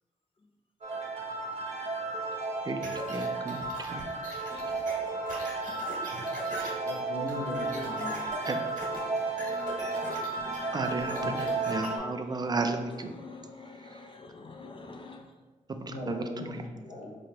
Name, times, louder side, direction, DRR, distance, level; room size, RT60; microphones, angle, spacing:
sound 1, 0.8-12.0, right 3 dB, 50° right, 0.9 m, -33 dB
sound 2, 2.8-11.9, right 1 dB, 70° right, 1.4 m, -41 dB
voice 1, 3.1-4.0 8.5-8.6 10.7-13.1 13.9-14.0 15.7-16.6, right 3 dB, 30° right, 6 dB, 0.4 m, -33 dB
voice 2, 6.8-8.2 11.0-11.3 15.8-17.1, left 1 dB, 65° left, -4 dB, 1.2 m, -38 dB
voice 3, 9.0-10.8 11.5-11.9 13.1-15.3, left 3 dB, 40° left, 3 dB, 0.4 m, -47 dB
5.0 x 2.8 x 2.9 m, 1.3 s
cardioid pair, 95°, 13 cm